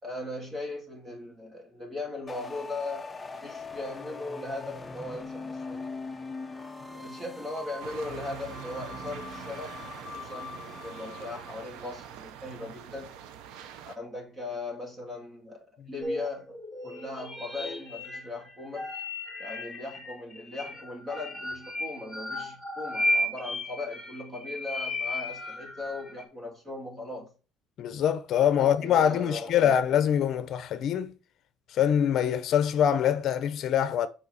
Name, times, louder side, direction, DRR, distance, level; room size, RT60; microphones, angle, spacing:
voice 1, 0.0-5.8 6.9-9.8 10.1-13.1 13.9-18.9 19.4-27.3 28.6-29.8, left 2 dB, 30° right, 2.9 m, -39 dB
sound 1, 2.3-11.9, left 4 dB, 15° left, 0.7 m, -41 dB
sound 2, 7.8-14.0, right 9 dB, 85° right, 0.7 m, -44 dB
sound 3, 16.0-26.2, left 1 dB, 10° right, 2.1 m, -34 dB
voice 2, 27.8-31.1 31.7-34.1, left 9 dB, 55° left, 0.7 m, -24 dB
7.5 x 5.0 x 4.1 m
cardioid pair, 125°, 0 cm